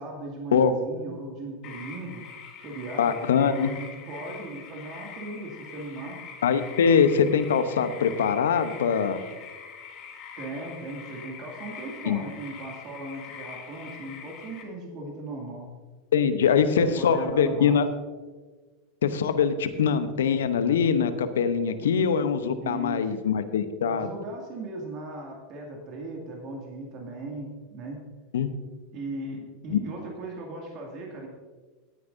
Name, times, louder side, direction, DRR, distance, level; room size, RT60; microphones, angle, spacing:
voice 1, 0.0-2.2 2.6-6.2 10.4-15.7 16.8-17.8 21.8-21.9 22.6-23.1 23.9-28.0 28.9-31.3, right 2 dB, 45° right, 0 dB, 2.3 m, -37 dB
sound 1, 1.6-14.6, left 6 dB, 50° left, 3.4 m, -43 dB
voice 2, 3.0-3.7 6.4-9.2 12.1-12.2 16.1-17.9 19.0-24.1 28.3-28.5 29.7-29.8, left 7 dB, 75° left, 10 dB, 0.8 m, -23 dB
17.5 x 9.6 x 2.7 m, 1.4 s
hypercardioid pair, 90°, 0 cm